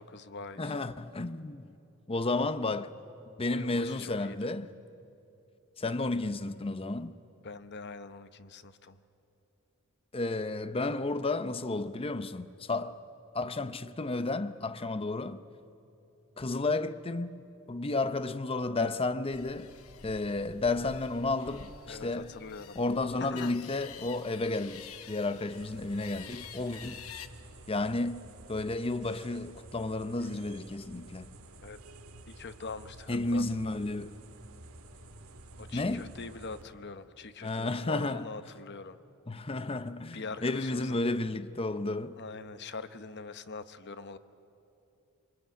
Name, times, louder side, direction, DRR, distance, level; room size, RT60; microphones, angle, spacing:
voice 1, 0.0-0.8 3.4-4.5 7.4-9.0 21.9-22.7 23.2-23.5 31.6-31.8 32.3-33.4 35.6-39.0 40.1-41.0 42.2-44.2, left 4 dB, 50° left, 0.9 m, -43 dB
voice 2, 0.6-1.7 2.1-3.0 3.4-4.7 5.8-7.2 10.1-13.0 13.3-15.4 16.4-19.8 20.0-22.4 22.7-27.0 27.7-31.3 33.1-34.2 35.7-36.1 37.4-38.2 39.3-42.2, left 2 dB, 25° left, 0.7 m, -32 dB
sound 1, 19.3-27.3, left 7 dB, 75° left, 1.0 m, -49 dB
Piano, 21.4-29.4, equal, 5° right, 4.6 m, -62 dB
sound 2, 25.5-36.6, right 2 dB, 75° right, 1.8 m, -51 dB
27.0 x 23.5 x 9.3 m
head